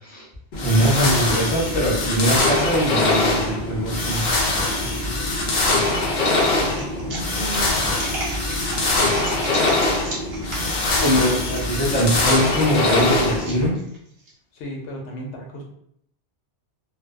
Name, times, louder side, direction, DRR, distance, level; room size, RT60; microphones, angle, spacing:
sound 1, 0.5-13.7, left 2 dB, 55° left, 0.6 m, -22 dB
voice 1, 0.6-4.3 11.0-13.7, equal, 10° left, -6 dB, 0.7 m, -22 dB
sound 2, 4.2-4.8 5.3-14.3, right 2 dB, 65° right, 0.9 m, -36 dB
voice 2, 4.8-5.2 6.5-8.2 14.5-15.6, right 1 dB, 90° left, 0 dB, 0.9 m, -35 dB
2.5 x 2.3 x 2.2 m, 0.71 s
omnidirectional pair, 1.2 m